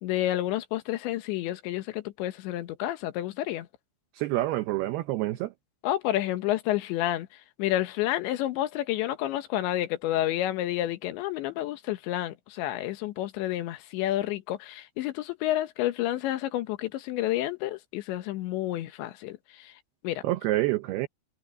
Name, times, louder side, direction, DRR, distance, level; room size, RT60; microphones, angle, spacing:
voice 1, 0.0-3.7 5.8-7.3 7.6-19.7 20.0-20.2, left 14 dB, 80° left, 3.5 m, -30 dB
voice 2, 4.1-5.5 20.2-21.1, right 17 dB, 75° right, 2.5 m, -27 dB
omnidirectional pair, 5.1 m